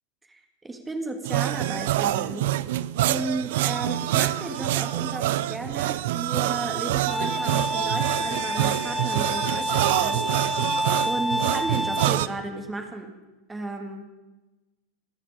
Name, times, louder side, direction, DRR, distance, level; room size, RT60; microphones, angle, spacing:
voice 1, 0.3-2.5 3.1-10.8 11.0-13.1 13.5-14.1, right 2 dB, 10° right, 4 dB, 2.3 m, -34 dB
sound 1, 1.2-12.3, right 14 dB, 60° right, 0.5 m, -26 dB
Bowed string instrument, 7.1-12.1, equal, 5° left, 1.1 m, -28 dB
26.0 x 9.9 x 5.2 m, 1.1 s
figure-of-eight pair, 90°, 0 cm